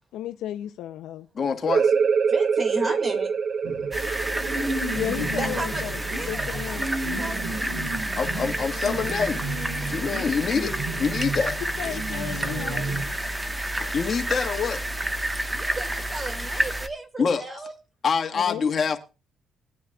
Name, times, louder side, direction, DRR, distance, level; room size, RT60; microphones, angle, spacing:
voice 1, 0.1-1.3 4.9-5.9 6.3-6.9 11.8-12.9 18.3-18.7, left 12 dB, 90° left, 0.6 m, -33 dB
voice 2, 1.3-1.9 8.1-9.4 9.9-10.7 11.0-11.6 11.9-12.3 13.9-14.8 17.2-17.4 18.0-19.0, left 6 dB, 45° left, 1.6 m, -26 dB
sound 1, 1.7-7.0, right 6 dB, 55° right, 0.5 m, -26 dB
voice 3, 2.3-3.3 5.4-7.6 15.5-17.7, right 2 dB, 30° right, 2.2 m, -34 dB
sound 2, 3.6-13.1, right 2 dB, 85° right, 2.9 m, -33 dB
sound 3, 3.9-16.9, right 1 dB, 15° right, 1.3 m, -30 dB
20.5 x 9.4 x 2.4 m
cardioid pair, 90°, 0 cm